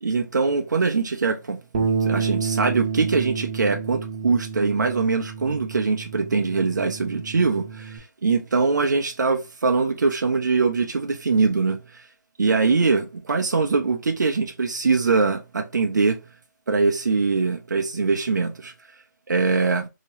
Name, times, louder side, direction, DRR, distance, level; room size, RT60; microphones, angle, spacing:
voice 1, 0.0-12.0 12.4-16.2 16.7-18.7 19.3-19.9, right 4 dB, 70° right, 0.6 m, -22 dB
Bass guitar, 1.7-8.0, right 5 dB, 35° right, 0.8 m, -29 dB
2.9 x 2.9 x 2.8 m
figure-of-eight pair, 155°, 10 cm